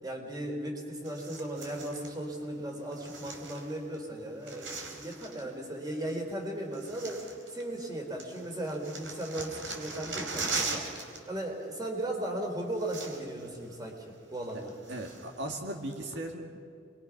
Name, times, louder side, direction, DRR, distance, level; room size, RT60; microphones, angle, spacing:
voice 1, 0.0-10.9 11.3-14.7, right 1 dB, 20° right, 1 dB, 3.7 m, -36 dB
sound 1, 1.0-2.1 2.9-4.0 4.2-5.5 6.3-6.4 6.7-7.9 8.2-11.2 11.5-11.7 12.4-12.5 12.7-13.5 13.8-13.9 14.4-15.4 15.9-16.0, right 4 dB, 80° right, 3.6 m, -39 dB
voice 2, 14.9-16.6, right 1 dB, 65° right, 2 dB, 2.1 m, -37 dB
29.5 x 22.5 x 5.9 m, 2.3 s
head